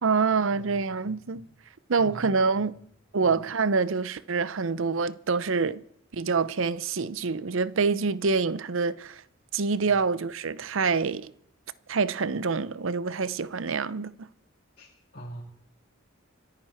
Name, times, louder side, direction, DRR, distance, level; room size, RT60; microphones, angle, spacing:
voice 1, 0.0-1.5 1.9-2.7 3.1-5.8 6.1-9.2 9.5-11.3 11.9-14.3, right 4 dB, 70° right, 0.7 m, -26 dB
voice 2, 0.5-1.5 2.0-2.4 2.8-2.9 3.2-3.4 9.8-10.0 14.8-14.9 15.1-15.4, right 1 dB, 45° left, 3.9 m, -44 dB
26.0 x 9.8 x 4.4 m
head